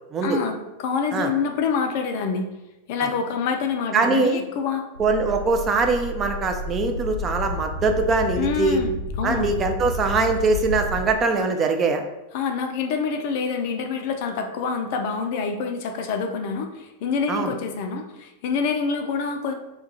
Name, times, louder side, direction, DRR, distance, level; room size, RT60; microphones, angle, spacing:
voice 1, 0.2-2.5 2.9-4.9 8.4-9.5 12.3-19.5, left 5 dB, 50° left, 5 dB, 0.3 m, -26 dB
voice 2, 3.9-4.4 5.0-8.8 9.2-12.0 17.3-17.5, right 3 dB, 25° right, 5 dB, 0.3 m, -22 dB
sound 1, 4.9-11.1, left 1 dB, 90° right, 0.5 m, -31 dB
2.3 x 2.2 x 3.9 m, 0.99 s
figure-of-eight pair, 90°, 0 cm